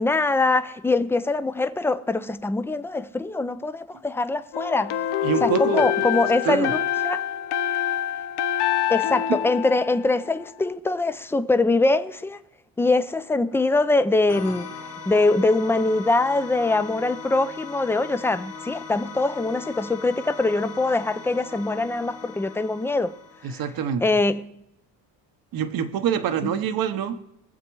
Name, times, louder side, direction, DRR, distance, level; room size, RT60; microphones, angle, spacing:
voice 1, 0.0-5.0 5.4-7.2 8.9-12.4 12.8-14.7 15.1-23.1 23.4-23.5 24.0-24.6 26.4-26.5, left 2 dB, 5° left, 0.4 m, -23 dB
sound 1, 4.5-10.5, left 11 dB, 85° left, 1.0 m, -26 dB
voice 2, 5.2-5.9 6.4-6.7 9.3-9.4 23.4-24.0 25.5-27.2, right 8 dB, 60° right, 1.0 m, -25 dB
sound 2, 14.3-23.7, left 5 dB, 40° left, 1.5 m, -39 dB
22.0 x 7.3 x 4.6 m
cardioid pair, 130°, 39 cm